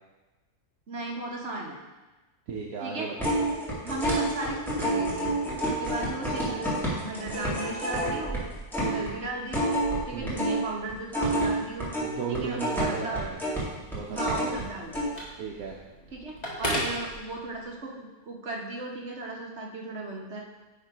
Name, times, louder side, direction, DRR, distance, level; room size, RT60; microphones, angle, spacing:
voice 1, 0.9-1.8 2.8-3.1 3.8-5.4 5.6-8.4 8.9-9.8 10.1-11.9 12.3-13.2 14.1-15.2 16.1-20.4, right 2 dB, 50° right, -1 dB, 1.5 m, -36 dB
voice 2, 2.5-3.4 5.9-6.0 8.8-9.0 10.1-10.4 11.9-13.4 13.9-14.4 15.4-15.8 16.7-16.8, right 5 dB, 70° right, -1 dB, 1.2 m, -35 dB
sound 1, 3.2-10.6 10.9-14.6 14.9-15.0, right 1 dB, ahead, 2.1 m, -28 dB
Telephone, 13.1-17.8, equal, 25° left, 1.7 m, -37 dB
9.8 x 3.9 x 5.0 m, 1.1 s
omnidirectional pair, 1.6 m